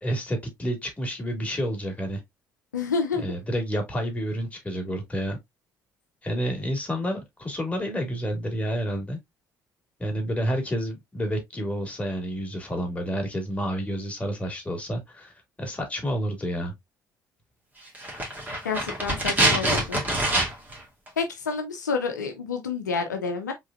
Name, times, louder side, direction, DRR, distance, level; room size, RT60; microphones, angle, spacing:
voice 1, 0.0-2.2 3.1-5.4 6.2-9.2 10.0-15.3 15.6-16.7, equal, 15° left, 2.5 m, -29 dB
voice 2, 2.7-3.2 18.6-20.0 21.2-23.5, left 5 dB, 85° left, 0.6 m, -29 dB
sound 1, 17.9-20.8 21.1-21.2, right 1 dB, 20° right, 2.3 m, -25 dB
4.7 x 3.9 x 2.5 m
figure-of-eight pair, 50°, 10 cm